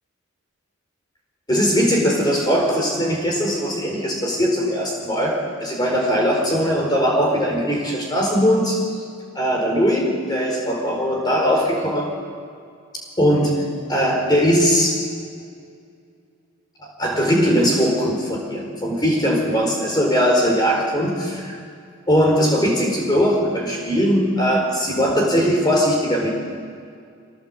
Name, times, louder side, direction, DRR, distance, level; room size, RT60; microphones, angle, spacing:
voice 1, 1.5-8.8 9.3-12.1 13.2-13.6 13.9-15.0 16.8-21.6 22.1-26.3, equal, 20° left, -1 dB, 4.5 m, -20 dB
24.0 x 17.0 x 7.9 m, 2.2 s
head